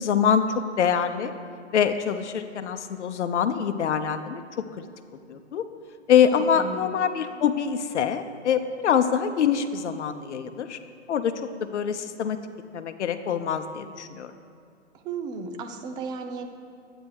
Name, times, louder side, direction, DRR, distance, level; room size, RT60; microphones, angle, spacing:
voice 1, 0.0-1.3 1.7-4.4 5.3-5.6 6.1-10.8 11.1-11.3 11.7-12.4 12.7-14.3, left 8 dB, 75° left, 9 dB, 0.8 m, -24 dB
voice 2, 6.3-6.9 15.0-16.5, right 4 dB, 10° right, 7 dB, 0.4 m, -34 dB
11.0 x 8.9 x 4.6 m, 2.4 s
hypercardioid pair, 125°, 35 cm